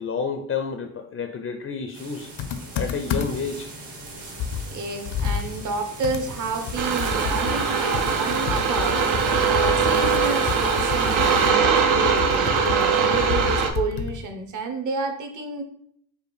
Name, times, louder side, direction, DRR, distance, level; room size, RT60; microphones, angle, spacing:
voice 1, 0.0-2.3 2.7-3.7, left 5 dB, 35° left, 6 dB, 0.4 m, -30 dB
sound 1, 1.9-11.5, right 2 dB, 60° right, 1.2 m, -40 dB
Computer keyboard, 2.4-3.6 4.0-4.1 4.4-14.3, left 7 dB, 75° left, 0.6 m, -30 dB
voice 2, 4.7-15.6, right 4 dB, 40° right, 4 dB, 0.7 m, -30 dB
sound 2, 6.8-13.7, right 6 dB, 85° right, 0.7 m, -21 dB
4.8 x 2.4 x 3.1 m, 0.68 s
cardioid pair, 75°, 46 cm